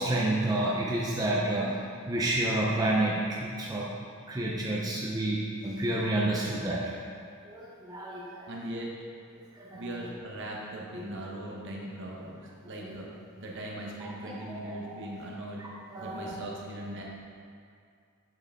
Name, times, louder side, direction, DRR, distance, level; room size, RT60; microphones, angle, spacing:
voice 1, 0.0-3.9 4.3-6.8 7.5-8.5 9.4-9.8 10.9-11.1 12.8-13.0 14.0-15.1 15.6-16.4, right 1 dB, 15° right, -4 dB, 0.5 m, -30 dB
voice 2, 8.5-8.9 9.7-13.1 13.4-15.6 16.0-17.1, right 1 dB, 55° right, -2 dB, 1.0 m, -39 dB
8.0 x 4.6 x 3.6 m, 2.3 s
head